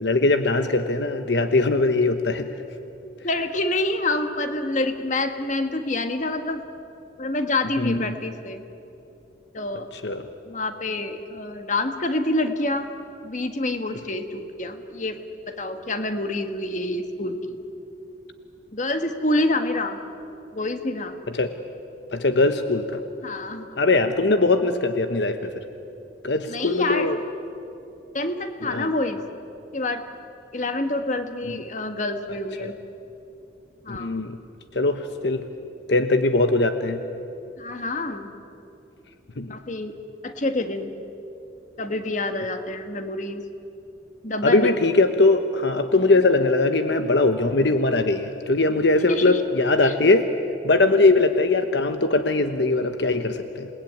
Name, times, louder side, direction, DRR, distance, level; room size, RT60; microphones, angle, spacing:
voice 1, 0.0-2.5 7.8-8.0 10.0-10.2 21.4-21.5 22.1-23.0 23.8-25.5 26.2-27.2 28.7-28.9 31.5-31.6 32.6-32.7 33.9-34.4 34.7-35.4 35.9-37.0 39.4-39.5 44.4-50.3 50.6-53.7, left 2 dB, 70° left, 8 dB, 1.1 m, -21 dB
voice 2, 3.2-6.6 7.2-8.6 9.5-9.9 10.5-12.9 13.2-15.2 15.5-17.6 18.7-20.0 20.5-21.2 23.2-23.7 26.5-27.1 28.1-29.2 29.7-30.0 30.5-32.7 33.8-34.2 37.6-38.3 39.5-39.9 40.2-40.9 41.8-43.4 44.2-44.7 49.1-49.4 49.8-49.9, left 2 dB, 40° left, 7 dB, 1.6 m, -27 dB
27.5 x 20.0 x 9.4 m, 2.8 s
head